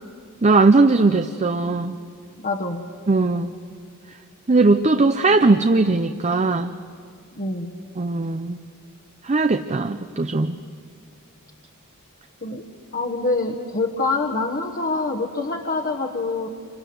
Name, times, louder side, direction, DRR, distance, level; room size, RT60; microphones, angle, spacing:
voice 1, 0.4-2.0 3.1-3.5 4.5-6.7 8.0-8.6 9.2-10.6, right 3 dB, 30° right, 8 dB, 0.6 m, -19 dB
voice 2, 2.4-2.9 7.3-7.8 12.4-12.7 12.9-16.5, left 3 dB, 45° left, 2 dB, 1.4 m, -25 dB
27.5 x 25.0 x 7.9 m, 2.2 s
head